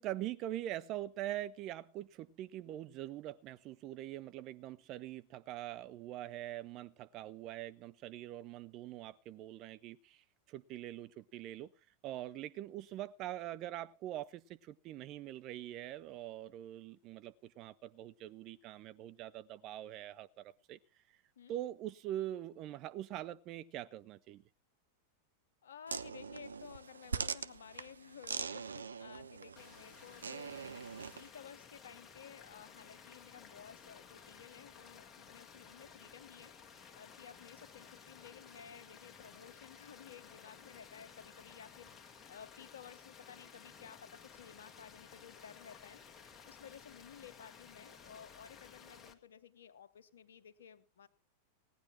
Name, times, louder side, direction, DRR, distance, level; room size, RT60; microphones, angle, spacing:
voice 1, 0.0-11.7 12.0-20.8 21.5-24.4, right 13 dB, 40° right, 0.8 m, -43 dB
voice 2, 25.6-30.9 31.1-51.1, left 8 dB, 65° left, 1.0 m, -55 dB
sound 1, 25.9-31.3, right 5 dB, 75° right, 0.6 m, -42 dB
sound 2, 29.6-49.1, left 6 dB, 20° left, 1.7 m, -56 dB
18.0 x 10.0 x 4.5 m
figure-of-eight pair, 90°, 0 cm